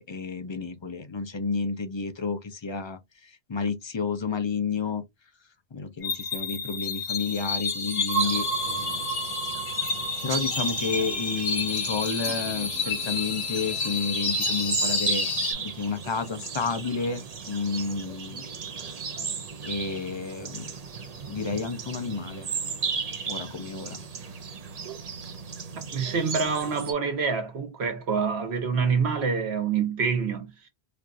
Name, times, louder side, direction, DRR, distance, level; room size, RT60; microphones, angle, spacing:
voice 1, 0.0-5.0 5.7-9.1 10.2-15.3 15.5-18.5 19.6-20.7 21.3-22.5 23.3-24.0, left 5 dB, 40° left, 0.4 m, -31 dB
sound 1, 6.0-15.5, left 3 dB, 70° left, 1.3 m, -29 dB
sound 2, 8.2-26.9, right 5 dB, 45° right, 0.6 m, -35 dB
voice 2, 25.9-30.5, right 5 dB, 85° right, 1.3 m, -26 dB
4.4 x 2.4 x 2.5 m
omnidirectional pair, 1.1 m